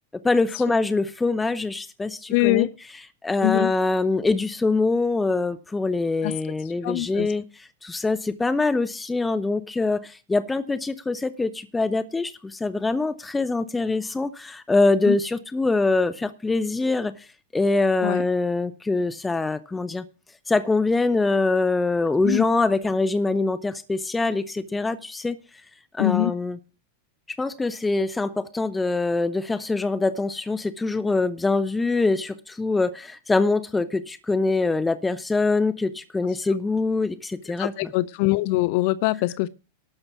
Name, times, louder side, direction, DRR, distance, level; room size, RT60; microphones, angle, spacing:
voice 1, 0.2-2.7 3.2-17.3 17.5-20.0 20.5-25.4 25.9-26.6 27.4-37.9, left 3 dB, 10° left, 0.8 m, -24 dB
voice 2, 2.3-2.7 3.4-3.7 6.2-6.3 6.8-7.3 15.1-15.2 18.0-18.2 22.2-22.5 26.0-26.4 37.6-39.5, left 19 dB, 45° left, 0.5 m, -23 dB
12.0 x 6.5 x 6.9 m
figure-of-eight pair, 90°, 0 cm